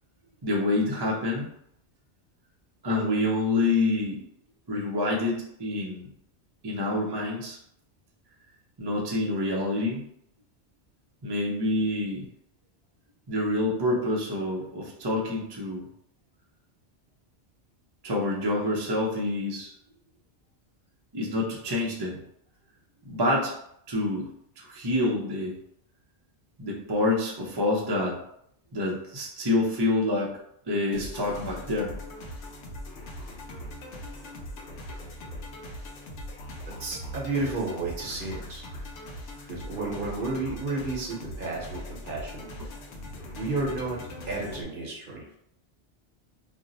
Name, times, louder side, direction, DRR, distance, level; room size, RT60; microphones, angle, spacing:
voice 1, 0.4-1.5 2.8-4.2 4.7-6.0 6.6-7.6 8.8-10.0 11.2-12.3 13.3-15.9 18.0-19.7 21.1-22.2 23.0-23.5 23.9-24.3 24.6-25.6 26.6-28.2 28.7-30.3 30.7-31.9, left 2 dB, 35° right, -2 dB, 0.4 m, -27 dB
sound 1, 30.9-44.6, left 1 dB, 90° left, 0.9 m, -40 dB
voice 2, 36.7-38.9 39.5-42.5 43.3-44.0 44.3-45.3, right 3 dB, 55° right, -3 dB, 0.9 m, -32 dB
2.5 x 2.0 x 3.8 m, 0.72 s
omnidirectional pair, 1.2 m